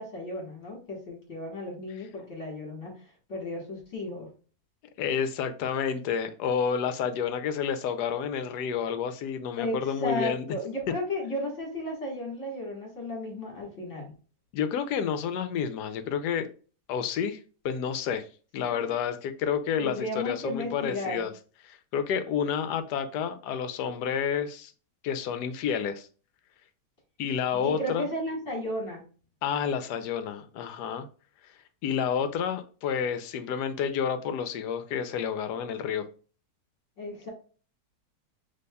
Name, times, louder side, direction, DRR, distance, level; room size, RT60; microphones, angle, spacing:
voice 1, 0.0-3.0 3.3-4.3 9.6-14.1 18.6-18.9 19.8-21.3 27.5-29.0 37.0-37.3, left 1 dB, 45° left, 1.7 m, -34 dB
voice 2, 5.0-10.4 14.5-16.5 16.9-17.4 17.6-18.3 18.5-21.3 21.7-24.7 25.0-26.1 27.2-28.1 29.4-31.1 31.8-36.0, left 7 dB, 75° left, 1.1 m, -30 dB
5.3 x 3.5 x 2.2 m
omnidirectional pair, 1.9 m